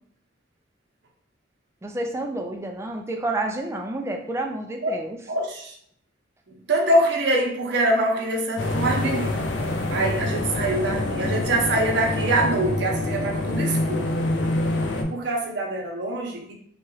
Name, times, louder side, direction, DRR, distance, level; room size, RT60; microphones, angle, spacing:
voice 1, 1.8-5.2, right 2 dB, 15° right, 3 dB, 0.3 m, -29 dB
voice 2, 5.3-5.7 6.7-9.4 9.9-14.1 15.1-16.5, right 1 dB, 60° right, -1 dB, 0.7 m, -24 dB
sound 1, 8.6-15.0, left 2 dB, 65° left, 0.4 m, -26 dB
2.9 x 2.3 x 3.1 m, 0.64 s
head